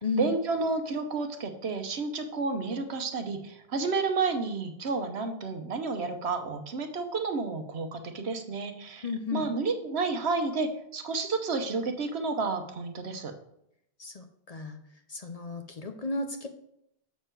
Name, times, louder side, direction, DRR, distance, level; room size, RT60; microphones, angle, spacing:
voice 1, 0.2-13.3, right 4 dB, 85° right, 6 dB, 1.2 m, -31 dB
voice 2, 9.0-9.5 14.0-14.8 15.1-16.5, left 3 dB, 40° left, 6 dB, 0.7 m, -33 dB
6.9 x 6.7 x 4.6 m, 0.75 s
omnidirectional pair, 1.1 m